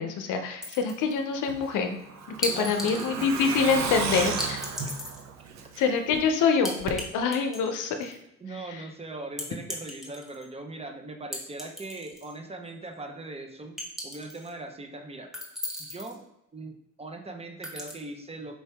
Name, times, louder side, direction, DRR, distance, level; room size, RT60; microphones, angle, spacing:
voice 1, 0.0-2.0 2.4-4.6 5.8-8.2 8.7-8.8, left 5 dB, 85° left, 6 dB, 0.6 m, -26 dB
sound 1, 0.6-1.2 2.4-3.1 4.4-5.2 6.6-7.0 7.3-8.2 9.4-10.5 11.3-12.3 12.7-12.8 13.8-14.5 15.3-16.2 17.6-17.9, equal, ahead, 1.1 m, -36 dB
Truck, 1.5-6.2 6.5-6.6 6.9-7.0, right 5 dB, 65° right, 0.7 m, -33 dB
voice 2, 2.5-3.3 4.0-4.1 8.4-13.8 14.0-15.3 15.8-16.2 16.5-18.6, right 2 dB, 20° right, 3 dB, 0.6 m, -40 dB
4.5 x 2.8 x 3.3 m, 0.81 s
cardioid pair, 90°, 30 cm